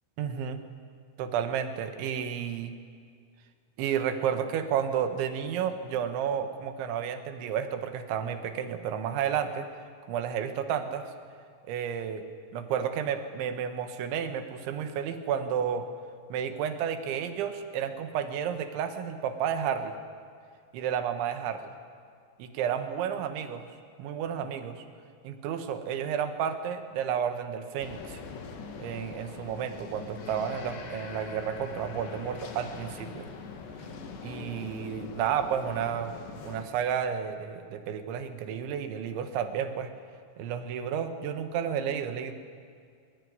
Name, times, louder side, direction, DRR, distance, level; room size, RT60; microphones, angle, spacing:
voice 1, 0.2-0.6 1.2-2.8 3.8-9.7 10.1-11.1 11.7-12.3 12.5-15.9 16.3-20.0 20.7-21.7 22.4-23.7 24.0-24.8 25.2-28.2 28.8-33.3 34.2-36.2 36.5-39.9 40.4-42.3, right 8 dB, 90° right, 8 dB, 3.8 m, -31 dB
sound 1, 27.8-36.7, left 5 dB, 75° left, 4.0 m, -42 dB
22.5 x 20.0 x 9.5 m, 2.2 s
omnidirectional pair, 5.2 m